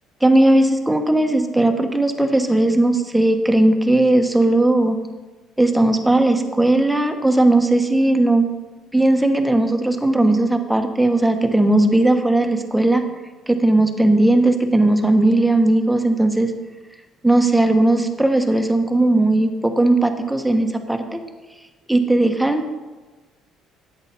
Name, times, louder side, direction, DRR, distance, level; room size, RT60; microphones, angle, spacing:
voice 1, 0.2-5.0 5.6-8.5 8.9-13.0 13.5-16.5 17.2-21.2 21.9-22.7, right 2 dB, 5° right, 5 dB, 1.2 m, -17 dB
10.5 x 8.1 x 4.2 m, 1.2 s
supercardioid pair, 80°, 0 cm